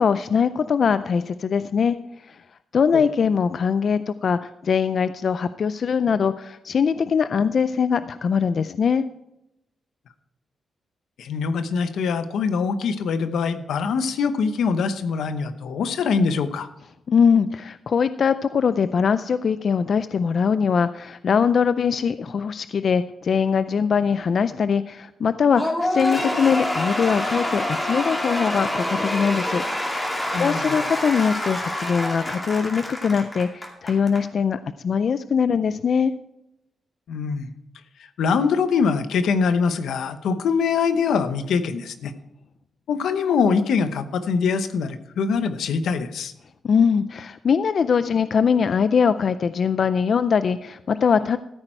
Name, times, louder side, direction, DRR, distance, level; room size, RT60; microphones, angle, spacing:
voice 1, 0.0-2.0 2.3-2.4 2.7-9.1 17.1-29.6 30.0-36.1 46.6-51.4, left 6 dB, 50° left, 13 dB, 0.4 m, -22 dB
voice 2, 11.2-16.7 30.3-30.9 37.1-37.5 38.2-42.1 42.9-46.3, left 5 dB, 90° left, 11 dB, 0.9 m, -23 dB
Cheering / Applause / Crowd, 25.6-34.2, left 1 dB, 15° left, 2.5 m, -27 dB
14.0 x 8.8 x 4.5 m, 0.85 s
wide cardioid pair, 130°, 0 cm